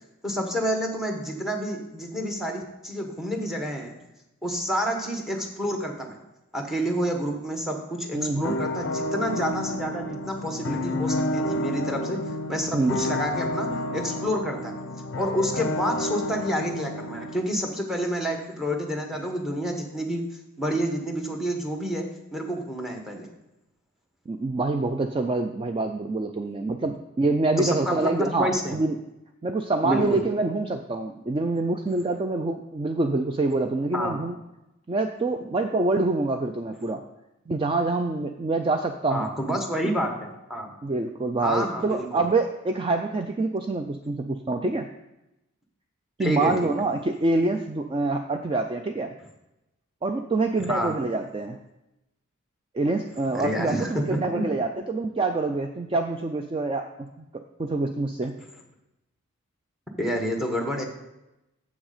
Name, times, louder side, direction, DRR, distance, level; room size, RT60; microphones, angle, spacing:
voice 1, 0.2-3.9 4.4-6.2 6.5-12.2 12.5-14.7 15.2-20.2 20.6-23.3 27.6-28.8 29.8-30.2 33.9-34.2 39.1-40.7 41.4-42.2 46.2-46.7 50.7-50.9 53.3-54.4 60.0-60.8, equal, ahead, 3 dB, 1.0 m, -29 dB
voice 2, 8.1-8.6 12.7-13.0 24.3-29.0 29.4-34.4 34.9-37.0 37.5-39.3 39.8-39.9 40.8-44.9 46.2-49.1 50.0-51.6 52.7-57.2 57.6-58.4, right 2 dB, 25° right, 5 dB, 0.3 m, -26 dB
sound 1, 8.4-17.4, left 1 dB, 50° left, 0.6 m, -30 dB
7.3 x 6.3 x 4.9 m, 0.93 s
head